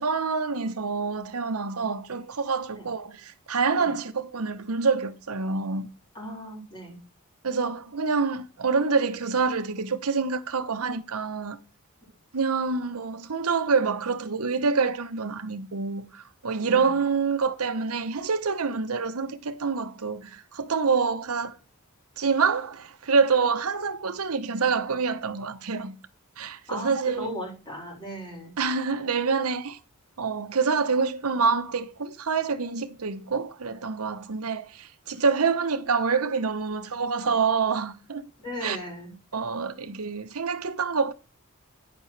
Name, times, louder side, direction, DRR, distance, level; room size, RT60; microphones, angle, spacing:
voice 1, 0.0-5.9 7.4-11.6 12.3-21.6 22.2-26.0 26.4-27.3 28.6-29.8 30.2-38.3 38.6-38.8 39.3-41.1, right 5 dB, 75° right, 0.9 m, -26 dB
voice 2, 6.1-7.0 16.6-16.9 26.7-28.5 38.4-39.1, equal, 20° left, 5.0 m, -37 dB
9.7 x 9.5 x 3.3 m
head